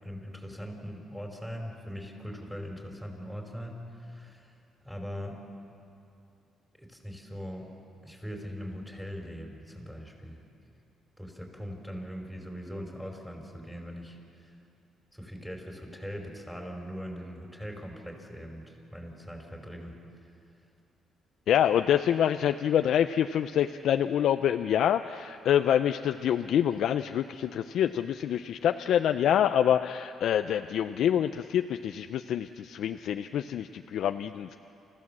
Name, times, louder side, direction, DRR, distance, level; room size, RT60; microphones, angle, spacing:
voice 1, 0.0-4.5 4.8-5.4 6.8-7.7 8.0-10.4 11.2-14.5 15.1-19.9, equal, 5° right, 1 dB, 5.1 m, -41 dB
voice 2, 21.5-34.5, left 10 dB, 75° left, 8 dB, 0.5 m, -26 dB
29.0 x 15.5 x 7.5 m, 2.7 s
cardioid pair, 90°, 0 cm